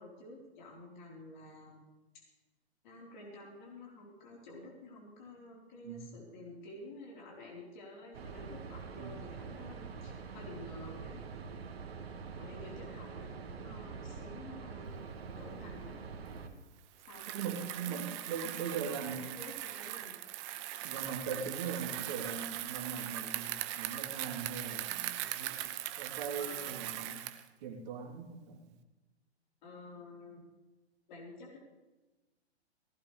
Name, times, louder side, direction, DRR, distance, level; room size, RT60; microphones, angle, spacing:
voice 1, 0.0-1.8 2.8-11.2 12.4-15.0 15.4-16.0 17.1-18.1 18.7-20.2 21.6-22.0 26.3-26.8 29.6-30.4 31.1-31.6, left 2 dB, 45° left, -2 dB, 4.3 m, -50 dB
sound 1, 8.1-16.5, right 5 dB, 65° right, 1.9 m, -45 dB
Bicycle, 17.0-27.5, right 14 dB, 25° right, 0.7 m, -40 dB
voice 2, 17.3-19.3 20.8-27.2 27.6-28.6, right 6 dB, 40° right, -2 dB, 3.4 m, -40 dB
18.0 x 15.5 x 3.4 m, 1.1 s
hypercardioid pair, 135°, 33 cm